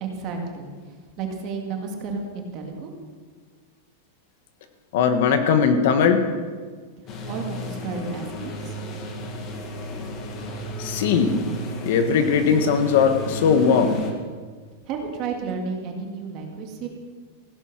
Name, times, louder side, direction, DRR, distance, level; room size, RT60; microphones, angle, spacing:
voice 1, 0.0-2.9 7.2-8.8 14.9-16.9, right 4 dB, 30° right, 2 dB, 2.0 m, -32 dB
voice 2, 4.9-6.2 10.8-11.4 11.8-14.0, left 6 dB, 50° left, 8 dB, 1.4 m, -19 dB
sound 1, 7.1-14.1, left 1 dB, 25° left, 1.6 m, -33 dB
16.0 x 11.0 x 6.2 m, 1.5 s
supercardioid pair, 180°, 0 cm